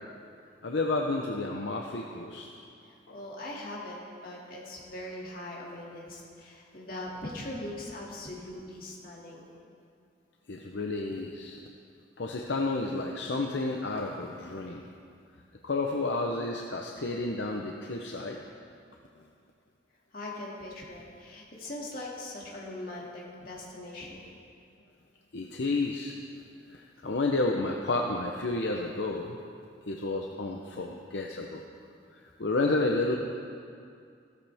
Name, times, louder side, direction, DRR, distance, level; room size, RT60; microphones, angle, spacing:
voice 1, 0.6-2.5 10.5-11.6 12.2-14.9 15.6-18.4 25.3-26.1 26.7-29.4 29.9-31.6 32.1-33.2, left 2 dB, 70° left, 1 dB, 0.8 m, -31 dB
voice 2, 2.8-9.4 20.1-24.2, left 1 dB, 50° left, -4 dB, 2.4 m, -41 dB
15.5 x 13.0 x 3.5 m, 2.4 s
head